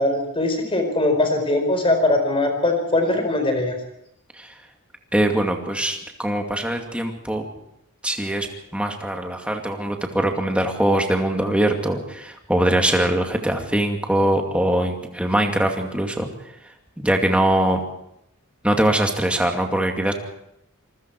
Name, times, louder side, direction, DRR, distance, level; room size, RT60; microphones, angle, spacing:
voice 1, 0.0-3.8, left 2 dB, 25° left, 5 dB, 4.4 m, -21 dB
voice 2, 5.1-7.4 8.0-8.5 8.7-16.3 17.0-17.8 18.6-20.1, right 1 dB, 5° right, 2 dB, 2.4 m, -22 dB
27.0 x 20.5 x 4.7 m, 0.79 s
head